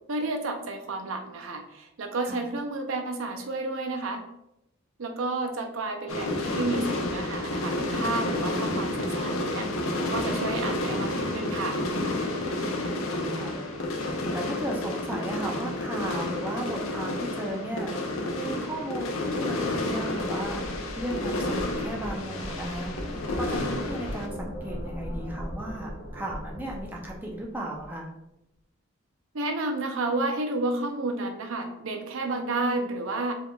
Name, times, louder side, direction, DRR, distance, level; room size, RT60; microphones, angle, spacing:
voice 1, 0.1-4.2 5.0-9.7 10.1-11.8 29.3-33.3, right 2 dB, 70° right, 5 dB, 0.6 m, -31 dB
sound 1, 6.1-24.3, left 1 dB, 75° left, 0.6 m, -30 dB
voice 2, 12.5-28.1, right 1 dB, 10° right, -2 dB, 0.6 m, -36 dB
sound 2, 19.2-28.0, equal, 50° left, 1.1 m, -39 dB
4.9 x 3.5 x 2.3 m, 0.85 s
head